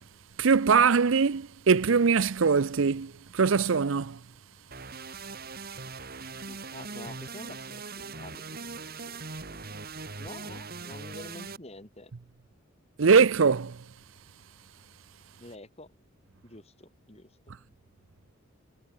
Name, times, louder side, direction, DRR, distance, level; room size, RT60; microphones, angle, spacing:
voice 1, 0.4-4.2 13.0-13.8, right 5 dB, 65° right, 0.6 m, -22 dB
sound 1, 4.7-11.6, right 4 dB, 45° right, 2.9 m, -41 dB
voice 2, 6.5-9.2 9.5-9.6 10.2-12.1 15.4-16.0 16.4-17.3, left 2 dB, 30° left, 2.6 m, -48 dB
head